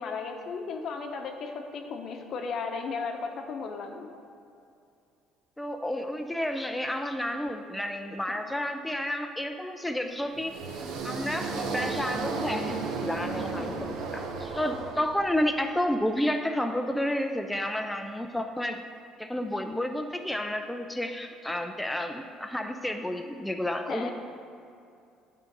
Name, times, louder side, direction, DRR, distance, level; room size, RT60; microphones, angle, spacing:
voice 1, 0.0-4.1 13.6-13.8 23.9-24.1, left 5 dB, 55° left, 4 dB, 0.8 m, -35 dB
voice 2, 5.6-10.5 11.0-18.8 19.2-24.1, left 1 dB, 5° left, 5 dB, 0.4 m, -31 dB
sound 1, 10.4-15.5, right 4 dB, 75° right, 0.8 m, -34 dB
9.2 x 3.7 x 5.3 m, 2.6 s
supercardioid pair, 90°, 0 cm